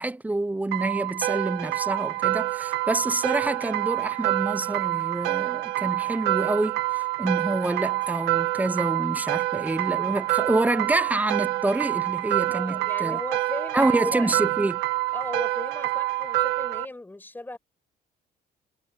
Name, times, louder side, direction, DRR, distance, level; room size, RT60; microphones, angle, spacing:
voice 1, 0.0-13.2 13.7-14.8, right 2 dB, 10° right, 0.7 m, -27 dB
sound 1, 0.7-16.8, right 18 dB, 80° right, 2.0 m, -27 dB
voice 2, 12.5-14.3 15.1-17.6, left 2 dB, 10° left, 6.1 m, -36 dB
cardioid pair, 110°, 17 cm